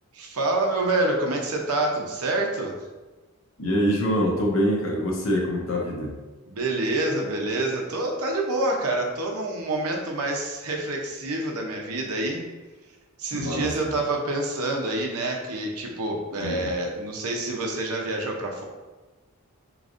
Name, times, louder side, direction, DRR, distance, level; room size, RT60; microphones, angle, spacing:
voice 1, 0.1-2.7 6.5-12.4 13.2-18.6, right 2 dB, 85° right, 1 dB, 0.7 m, -27 dB
voice 2, 3.6-6.1 13.3-13.9 16.4-16.7, equal, 60° left, -1 dB, 0.8 m, -25 dB
4.9 x 3.1 x 2.5 m, 1.2 s
head